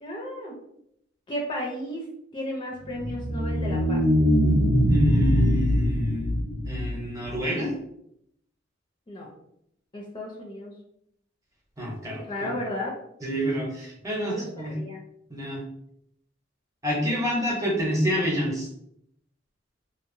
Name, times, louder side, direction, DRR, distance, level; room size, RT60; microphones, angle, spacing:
voice 1, 0.0-0.5 1.3-2.0 2.3-4.0 9.1-9.3 9.9-10.7 12.2-12.9 14.2-15.0, left 1 dB, 25° left, -2 dB, 0.4 m, -34 dB
sound 1, 2.8-7.4, equal, 50° right, 0.5 m, -22 dB
voice 2, 4.9-6.4 6.6-7.7 11.8-12.5 13.2-14.7 15.3-15.6 16.8-18.7, equal, 15° right, -3 dB, 0.7 m, -28 dB
2.8 x 2.0 x 2.6 m, 0.75 s
head